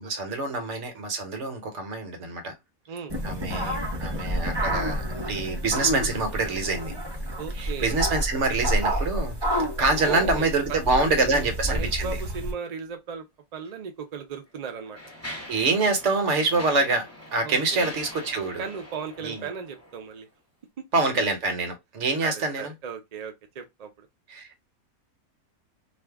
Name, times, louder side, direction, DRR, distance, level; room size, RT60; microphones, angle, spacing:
voice 1, 0.0-2.6 3.2-6.9 7.6-12.2 15.3-17.1 17.3-18.6 19.2-19.5 20.9-22.7 24.3-24.6, right 3 dB, 55° right, 1.1 m, -26 dB
sound 1, 3.1-12.5, equal, 20° right, 0.8 m, -29 dB
voice 2, 7.4-8.0 9.9-13.3 13.5-15.0 17.4-18.0 18.6-20.3 20.8-20.9 22.2-24.1, right 6 dB, 90° right, 0.3 m, -37 dB
Mechanisms, 13.6-13.7 14.4-20.2, left 1 dB, 10° left, 0.9 m, -43 dB
2.6 x 2.4 x 3.3 m
omnidirectional pair, 1.5 m